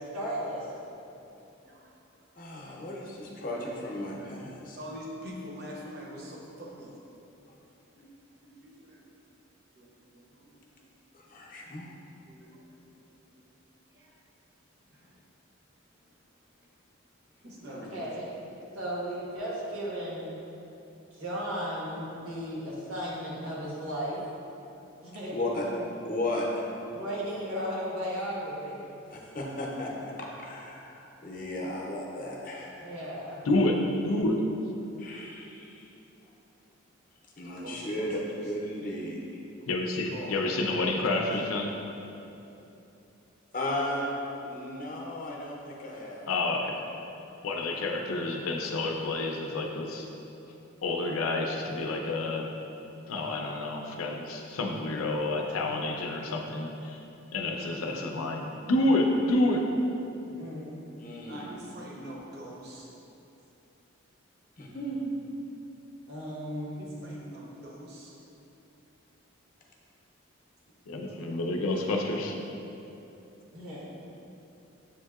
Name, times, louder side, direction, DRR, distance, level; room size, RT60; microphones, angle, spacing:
voice 1, 0.1-0.7 17.7-18.3 18.7-20.3 21.1-24.2 25.0-25.3 26.9-28.8 32.8-33.4 60.4-60.7 66.1-66.9 73.5-74.0, equal, 85° right, -5 dB, 1.0 m, -35 dB
voice 2, 2.4-4.8 11.1-11.9 25.3-25.7 26.0-26.7 29.1-32.8 35.0-35.9 37.4-39.2 43.5-44.1 44.4-46.3 57.8-58.1 61.0-61.5 64.6-65.1, left 1 dB, 40° left, -2 dB, 0.5 m, -35 dB
voice 3, 4.8-6.9 8.0-8.1 8.4-9.0 9.8-9.9 10.1-10.8 12.3-12.8 13.9-14.1 14.9-15.1 17.4-18.0 37.6-38.1 40.1-40.4 61.3-62.9 66.8-68.2, equal, 50° right, -3 dB, 0.7 m, -44 dB
voice 4, 33.5-33.8 34.0-34.4 39.7-41.7 46.3-46.9 47.4-50.1 50.8-52.5 53.1-57.0 57.3-59.7 70.9-72.3, left 2 dB, 90° left, 2 dB, 0.4 m, -29 dB
7.2 x 2.7 x 2.3 m, 2.9 s
head